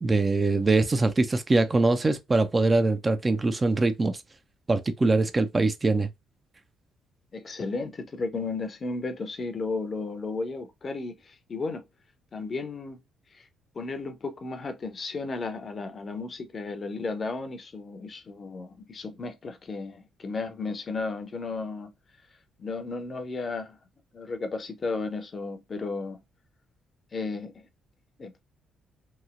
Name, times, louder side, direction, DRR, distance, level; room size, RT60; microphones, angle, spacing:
voice 1, 0.0-4.1 4.7-6.1, right 3 dB, 25° right, 0.5 m, -23 dB
voice 2, 7.3-11.8 12.3-13.0 13.3-13.4 13.7-21.9 22.6-23.8 24.1-26.2 27.1-27.5 28.2-28.4, left 3 dB, 40° left, 0.7 m, -34 dB
3.0 x 2.7 x 2.4 m
figure-of-eight pair, 45°, 0 cm